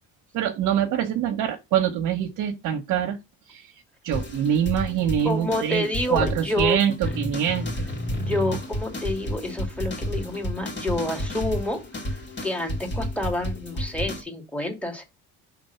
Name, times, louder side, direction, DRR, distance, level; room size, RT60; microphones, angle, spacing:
voice 1, 0.3-3.2 3.5-3.7 4.0-7.9, right 9 dB, 70° right, 1.2 m, -25 dB
sound 1, 4.1-14.2, equal, 35° left, 2.2 m, -31 dB
voice 2, 5.2-6.8 8.1-15.0, left 1 dB, 5° left, 2.2 m, -28 dB
5.2 x 3.7 x 5.6 m
supercardioid pair, 90°, 33 cm